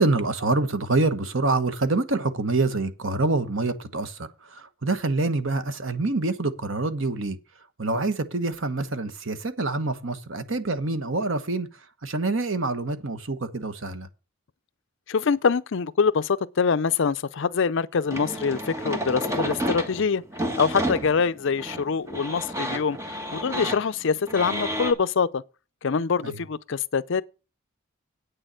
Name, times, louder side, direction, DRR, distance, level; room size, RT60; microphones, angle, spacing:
voice 1, 0.0-7.4 7.8-11.7 12.0-14.1 26.2-26.4, right 3 dB, 60° right, 1.2 m, -26 dB
voice 2, 15.1-20.2 20.6-23.0 23.3-25.4 25.8-27.2, left 5 dB, 60° left, 0.5 m, -24 dB
sound 1, 18.1-24.9, equal, 15° right, 1.4 m, -30 dB
8.8 x 6.7 x 7.5 m
head